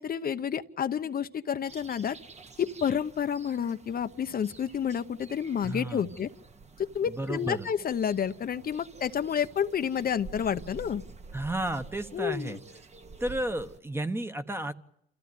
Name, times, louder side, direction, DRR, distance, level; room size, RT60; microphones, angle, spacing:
voice 1, 0.0-2.2 2.6-6.3 6.8-11.0 12.1-12.6, left 8 dB, 50° left, 9 dB, 0.9 m, -30 dB
sound 1, 1.7-13.8, right 4 dB, 35° right, 1.4 m, -49 dB
voice 2, 5.6-6.2 7.0-7.7 11.3-12.6 13.2-14.7, right 1 dB, 10° right, 9 dB, 1.3 m, -33 dB
28.0 x 15.5 x 9.4 m, 0.76 s
cardioid pair, 90°, 20 cm